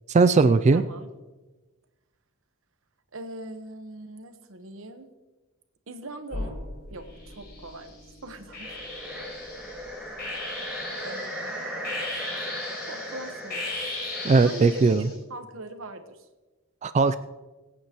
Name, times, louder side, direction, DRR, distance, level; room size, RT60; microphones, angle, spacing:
voice 1, 0.1-0.8 14.2-15.0 16.8-17.2, right 4 dB, 35° right, 12 dB, 0.3 m, -19 dB
voice 2, 0.7-1.1 3.1-5.1 5.9-6.6 6.9-8.7 10.0-10.2 11.0-11.6 12.9-13.7 14.4-16.3, right 2 dB, 65° right, 7 dB, 1.2 m, -41 dB
sound 1, 6.3-11.0, left 1 dB, 70° left, 3.1 m, -42 dB
sound 2, 7.1-7.9 8.5-15.2, left 2 dB, 50° left, 4.3 m, -38 dB
sound 3, 8.5-14.9, equal, 5° right, 2.2 m, -37 dB
24.0 x 8.6 x 3.0 m, 1.2 s
head